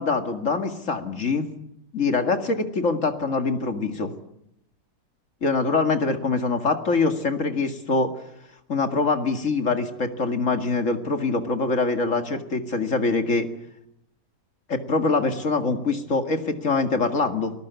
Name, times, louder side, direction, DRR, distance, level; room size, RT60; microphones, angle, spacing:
voice 1, 0.0-1.5 1.9-4.1 5.4-8.1 8.7-13.5 14.7-17.5, left 3 dB, 50° left, 7 dB, 2.4 m, -24 dB
28.5 x 20.0 x 8.2 m, 0.79 s
omnidirectional pair, 1.7 m